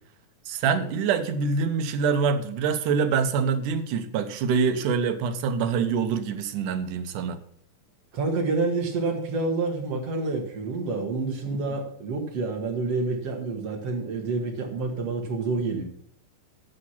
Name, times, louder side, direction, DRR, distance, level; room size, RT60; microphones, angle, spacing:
voice 1, 0.5-7.4, right 5 dB, 80° right, 2.5 m, -25 dB
voice 2, 8.1-15.8, right 3 dB, 55° right, 2.7 m, -28 dB
11.0 x 7.7 x 5.7 m
omnidirectional pair, 3.6 m